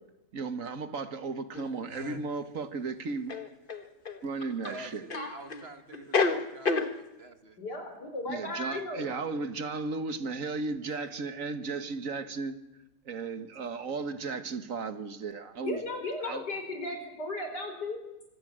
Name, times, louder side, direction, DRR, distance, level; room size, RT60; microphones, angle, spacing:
voice 1, 0.3-3.4 4.2-5.1 8.3-12.6 13.1-15.8 16.2-16.4, right 4 dB, 55° right, 11 dB, 1.8 m, -35 dB
sound 1, 1.5-1.7 3.3-4.2 5.1-5.7 5.9-6.9, left 4 dB, 35° left, 1.5 m, -28 dB
voice 2, 1.9-2.2 4.7-7.6 8.5-8.7 9.0-9.1, right 2 dB, 40° right, 8 dB, 2.0 m, -47 dB
voice 3, 7.6-9.1 15.6-18.0, left 2 dB, 75° left, 5 dB, 5.0 m, -35 dB
25.0 x 17.0 x 7.5 m, 0.95 s
omnidirectional pair, 1.8 m